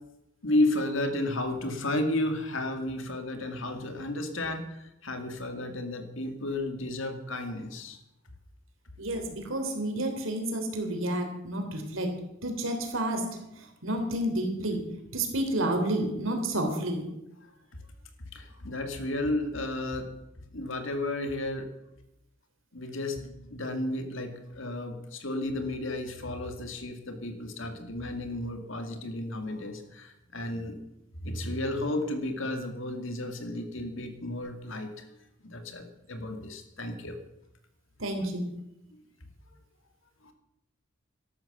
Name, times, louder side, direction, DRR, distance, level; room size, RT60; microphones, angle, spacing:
voice 1, 0.4-8.0 18.3-20.1 20.5-21.7 22.7-30.8 31.2-35.1 35.4-37.2 38.9-39.0 40.2-40.3, left 1 dB, 70° left, 6 dB, 2.4 m, -33 dB
voice 2, 9.0-12.1 12.4-13.3 13.8-14.8 15.1-17.1 38.0-38.4, right 1 dB, 80° right, 5 dB, 3.4 m, -30 dB
12.5 x 12.5 x 7.2 m, 0.87 s
head